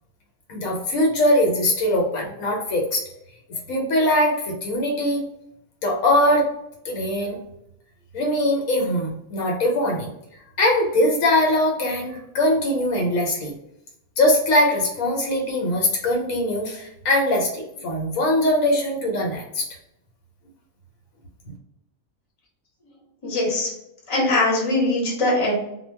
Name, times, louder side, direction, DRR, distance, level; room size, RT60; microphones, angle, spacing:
voice 1, 0.5-3.0 3.5-5.2 5.8-6.5 6.8-7.4 8.1-10.1 10.6-13.5 14.2-19.7, left 1 dB, 75° left, 0 dB, 1.0 m, -21 dB
voice 2, 23.2-23.7 24.1-25.5, left 2 dB, 30° left, -3 dB, 0.8 m, -21 dB
2.2 x 2.2 x 3.2 m, 0.82 s
omnidirectional pair, 1.5 m